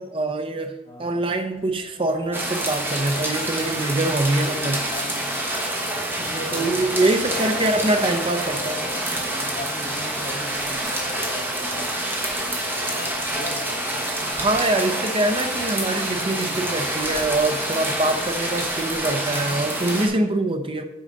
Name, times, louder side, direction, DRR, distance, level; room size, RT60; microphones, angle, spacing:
voice 1, 0.0-0.7 1.0-4.8 6.5-8.8 14.4-20.8, right 2 dB, 25° right, 7 dB, 0.6 m, -24 dB
voice 2, 0.9-1.3 4.9-6.7 7.2-7.4 9.0-13.9 14.2-14.5 16.2-16.6 19.3-19.7, equal, 25° left, -1 dB, 1.6 m, -40 dB
sound 1, 1.5-20.2, left 3 dB, 60° left, 1.4 m, -46 dB
sound 2, 2.3-20.1, right 1 dB, 10° right, 1.1 m, -27 dB
8.6 x 4.0 x 5.2 m, 0.99 s
head